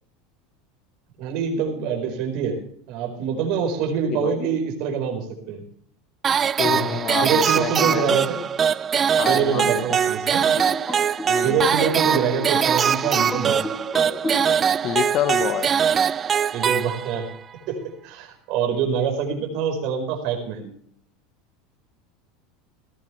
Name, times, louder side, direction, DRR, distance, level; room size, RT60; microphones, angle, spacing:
voice 1, 1.2-2.6 2.9-5.6 6.6-8.4 9.3-10.5 11.4-13.7 16.5-17.3 17.7-17.8 18.0-20.7, right 6 dB, 60° right, 3 dB, 4.7 m, -25 dB
sound 1, 6.2-17.4, right 7 dB, 25° right, 0.4 m, -22 dB
voice 2, 6.6-8.1 9.2-10.0 11.2-11.6 14.1-14.2 14.8-15.7, left 11 dB, 45° left, 13 dB, 1.3 m, -27 dB
sound 2, 10.4-15.0, equal, 15° left, 4.2 m, -34 dB
17.5 x 14.0 x 3.4 m, 0.63 s
supercardioid pair, 130°, 0 cm